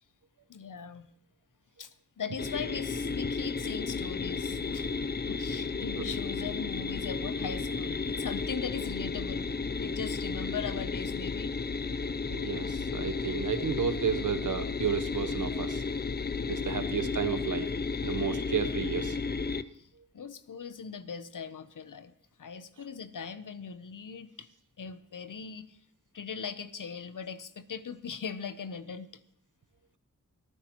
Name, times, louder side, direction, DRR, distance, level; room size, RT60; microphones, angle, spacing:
voice 1, 0.5-1.1 1.8-4.9 5.3-9.5 9.8-11.6 16.8-17.0 19.7-19.9 20.1-22.1 22.4-24.5 24.8-25.8 26.1-29.2, left 6 dB, 75° left, 13 dB, 0.8 m, -40 dB
sound 1, 2.4-19.6, left 4 dB, 30° left, 0.5 m, -33 dB
voice 2, 12.3-15.8 16.5-17.7 18.0-19.2, right 6 dB, 70° right, 11 dB, 0.9 m, -32 dB
25.0 x 9.9 x 3.0 m, 0.67 s
wide cardioid pair, 65°, 32 cm